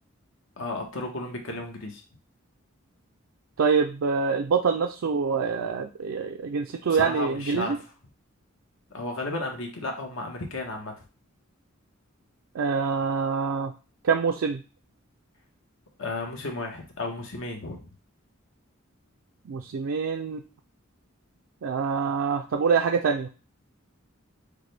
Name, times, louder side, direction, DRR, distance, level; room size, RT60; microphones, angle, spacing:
voice 1, 0.6-2.0 6.9-7.8 8.9-10.9 16.0-17.9, left 2 dB, 70° left, 2 dB, 1.0 m, -33 dB
voice 2, 3.6-7.8 12.5-13.7 14.0-14.6 19.5-20.4 21.6-23.3, right 5 dB, 70° right, 4 dB, 0.4 m, -25 dB
6.4 x 2.2 x 3.3 m, 0.34 s
head